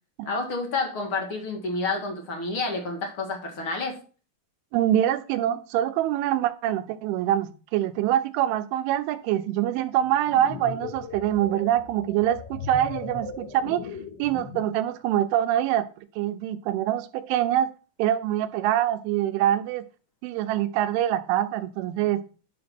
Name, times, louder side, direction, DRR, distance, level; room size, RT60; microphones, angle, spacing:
voice 1, 0.2-4.0, left 3 dB, 50° left, 1.6 m, -29 dB
voice 2, 4.7-13.8 14.2-15.9 16.2-17.7 18.0-19.8 20.2-22.2, right 12 dB, 90° right, 3.3 m, -25 dB
sound 1, 10.0-14.8, left 5 dB, 75° left, 4.1 m, -38 dB
10.5 x 5.2 x 6.0 m
omnidirectional pair, 5.4 m